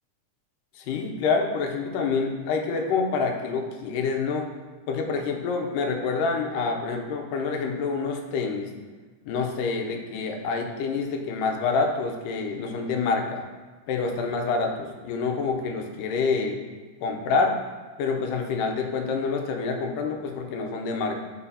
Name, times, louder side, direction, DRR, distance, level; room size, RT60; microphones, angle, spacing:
voice 1, 0.8-4.5 4.9-8.7 9.3-13.4 13.9-16.6 17.0-17.6 18.0-21.2, left 4 dB, 90° left, 3 dB, 2.4 m, -27 dB
11.0 x 4.8 x 2.8 m, 1.3 s
omnidirectional pair, 3.7 m